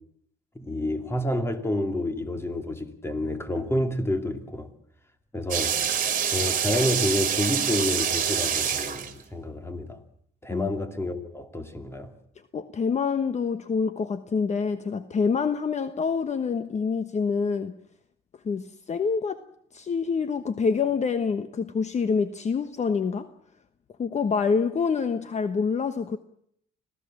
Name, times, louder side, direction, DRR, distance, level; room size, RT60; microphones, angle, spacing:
voice 1, 0.5-4.7 5.3-5.8 6.3-10.0 10.4-12.1, left 1 dB, 15° left, 2.7 m, -29 dB
sound 1, 5.5-9.4, right 8 dB, 45° right, 2.5 m, -26 dB
voice 2, 12.5-17.7 18.4-19.4 19.7-23.3 24.0-26.2, left 5 dB, 40° left, 1.2 m, -26 dB
25.5 x 17.0 x 7.4 m
cardioid pair, 100°, 18 cm